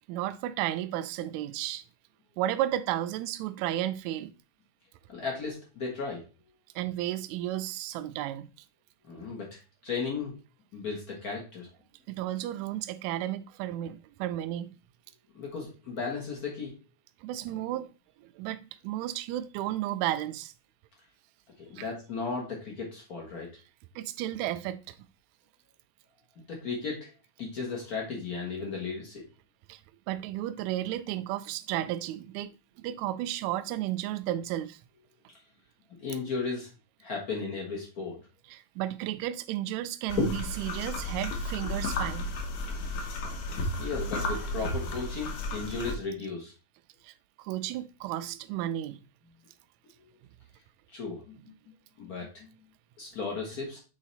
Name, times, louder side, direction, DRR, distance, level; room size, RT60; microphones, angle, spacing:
voice 1, 0.1-1.8 2.4-4.3 6.7-8.5 12.1-14.7 17.2-17.9 18.4-20.5 21.8-21.9 23.9-24.9 29.7-29.8 30.1-32.5 32.8-34.8 38.5-42.3 47.0-49.0, right 13 dB, 80° right, 1.7 m, -33 dB
voice 2, 5.1-6.3 9.1-10.4 10.7-11.7 15.3-16.7 21.6-23.5 26.4-27.1 27.4-29.2 36.0-36.7 37.0-38.2 40.2-40.3 43.5-46.5 50.0-50.1 50.9-51.4 52.0-52.5 53.0-53.8, left 4 dB, 85° left, 0.8 m, -35 dB
sound 1, 40.1-45.9, left 2 dB, 70° left, 1.9 m, -34 dB
7.4 x 3.2 x 4.0 m
omnidirectional pair, 3.7 m